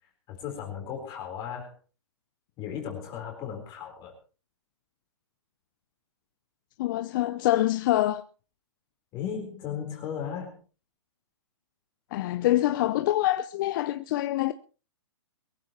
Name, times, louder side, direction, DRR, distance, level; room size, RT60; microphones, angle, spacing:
voice 1, 0.3-1.7 2.6-4.2 9.1-10.6, left 8 dB, 30° left, 3.9 m, -36 dB
voice 2, 6.8-8.2 12.1-14.5, left 15 dB, 45° left, 0.7 m, -25 dB
22.5 x 15.0 x 3.0 m
hypercardioid pair, 135°, 15 cm